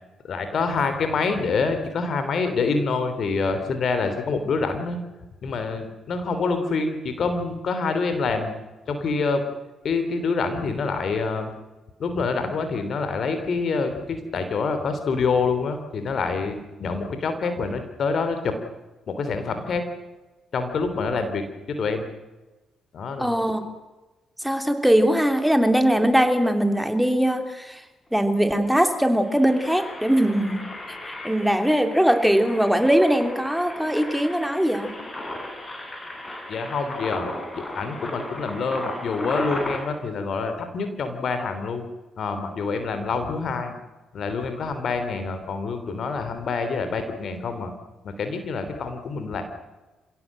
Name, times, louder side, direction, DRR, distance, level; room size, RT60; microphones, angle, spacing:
voice 1, 0.2-5.0 5.4-8.5 8.9-9.4 9.8-11.5 12.0-18.6 19.1-19.8 20.5-22.1 22.9-23.4 36.5-41.9 42.2-43.8 44.1-47.7 48.0-49.4, left 4 dB, 60° left, 8 dB, 3.3 m, -26 dB
voice 2, 23.2-23.6 24.4-27.8 28.1-34.9, equal, ahead, 6 dB, 3.1 m, -21 dB
Engine, 28.1-28.2 28.4-28.6 29.1-39.8, left 1 dB, 30° left, 6.3 m, -35 dB
26.5 x 17.0 x 7.6 m, 1.1 s
hypercardioid pair, 40°, 0 cm